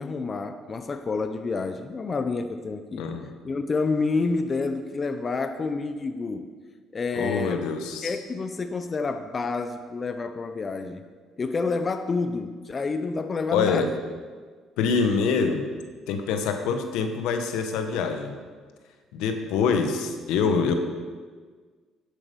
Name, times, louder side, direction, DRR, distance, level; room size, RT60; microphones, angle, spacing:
voice 1, 0.0-3.1 3.4-6.5 6.9-7.6 8.0-11.0 11.4-13.9, left 4 dB, 30° left, 8 dB, 0.6 m, -28 dB
voice 2, 3.0-3.3 7.1-8.2 13.5-13.9 14.8-15.7 16.1-18.4 19.1-20.7, left 5 dB, 85° left, 6 dB, 1.1 m, -25 dB
10.0 x 8.2 x 5.3 m, 1.5 s
cardioid pair, 120°, 0 cm